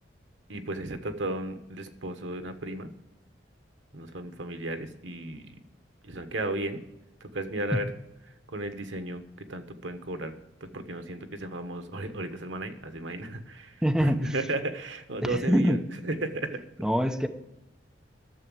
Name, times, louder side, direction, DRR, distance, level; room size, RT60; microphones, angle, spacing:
voice 1, 0.5-2.9 3.9-5.5 6.0-6.8 7.2-7.9 8.5-9.2 9.5-10.3 10.7-16.6, right 2 dB, 85° right, 8 dB, 1.3 m, -34 dB
voice 2, 13.8-14.3 15.2-15.8 16.8-17.3, equal, 5° right, 5 dB, 0.8 m, -24 dB
11.0 x 7.2 x 8.6 m, 0.94 s
head